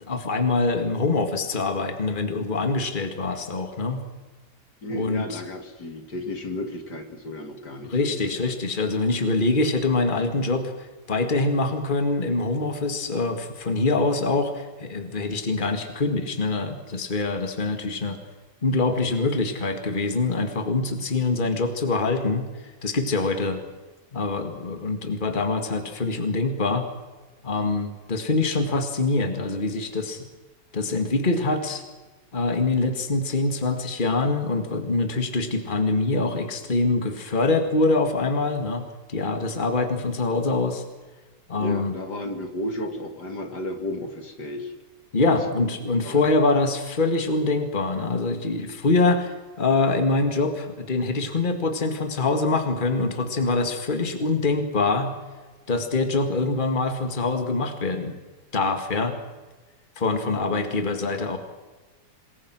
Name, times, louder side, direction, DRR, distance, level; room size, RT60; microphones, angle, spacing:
voice 1, 0.1-4.0 4.9-5.4 7.8-18.2 18.6-22.5 22.8-23.6 24.1-26.9 27.4-30.3 30.7-31.8 32.3-40.8 41.5-41.9 45.1-55.1 55.7-58.2 58.5-59.2 60.0-61.4, left 3 dB, 30° left, 6 dB, 2.2 m, -24 dB
voice 2, 4.8-8.4 41.6-44.7 45.8-46.3, left 1 dB, 65° left, 6 dB, 2.9 m, -33 dB
26.5 x 21.5 x 6.2 m, 1.2 s
omnidirectional pair, 1.9 m